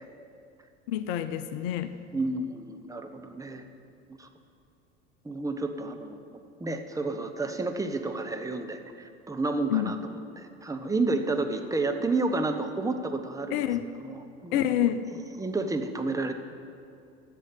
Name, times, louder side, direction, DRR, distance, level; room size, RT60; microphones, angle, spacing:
voice 1, 0.9-2.0 9.7-9.9 13.5-13.8 14.5-15.1, left 12 dB, 55° left, 12 dB, 0.7 m, -27 dB
voice 2, 2.1-3.6 4.2-4.3 5.2-6.2 6.6-13.6 14.0-16.3, right 3 dB, 10° right, 6 dB, 1.1 m, -31 dB
10.5 x 7.5 x 9.0 m, 2.5 s
figure-of-eight pair, 75°, 34 cm